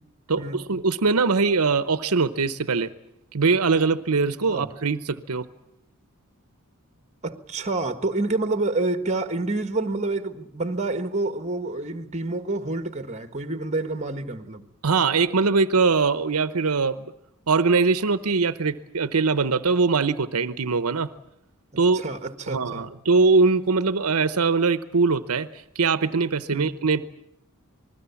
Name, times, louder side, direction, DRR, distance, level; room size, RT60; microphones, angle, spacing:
voice 1, 0.3-2.9 3.3-5.5 14.8-17.1 17.5-21.1 21.8-22.1 22.5-25.5 25.8-27.0, right 4 dB, 85° right, 0.9 m, -22 dB
voice 2, 7.2-14.7 21.7-22.9 26.5-26.7, right 2 dB, 30° right, 1.6 m, -28 dB
27.5 x 20.5 x 7.2 m
head